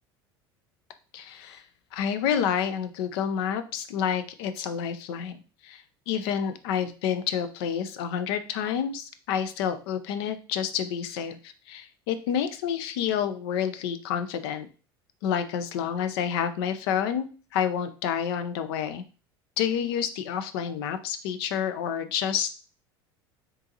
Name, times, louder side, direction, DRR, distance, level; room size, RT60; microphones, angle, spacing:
voice 1, 1.1-1.6 1.9-14.7 15.2-19.0 19.6-22.5, left 8 dB, 65° left, 9 dB, 0.5 m, -29 dB
3.7 x 2.6 x 2.8 m, 0.35 s
hypercardioid pair, 75°, 13 cm